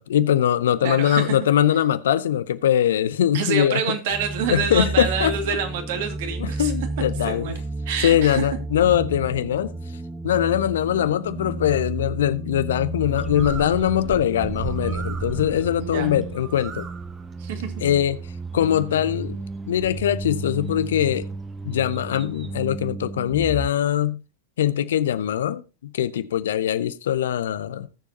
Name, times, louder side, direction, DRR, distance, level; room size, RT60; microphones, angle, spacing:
voice 1, 0.0-3.8 4.5-5.6 6.4-7.5 8.0-9.7 10.2-16.9 17.8-18.2 18.5-19.4 19.7-21.3 21.6-24.2 24.6-25.6 25.9-27.9, left 10 dB, 60° left, 0.6 m, -22 dB
voice 2, 0.8-1.4 3.3-6.7 7.2-7.5 7.9-8.5 15.8-16.1 17.4-17.7, right 6 dB, 50° right, 2.1 m, -27 dB
sound 1, 4.1-23.7, right 3 dB, 10° right, 0.4 m, -32 dB
Bird, 13.0-22.6, right 4 dB, 25° right, 1.3 m, -38 dB
18.5 x 7.0 x 2.8 m
figure-of-eight pair, 90°, 0 cm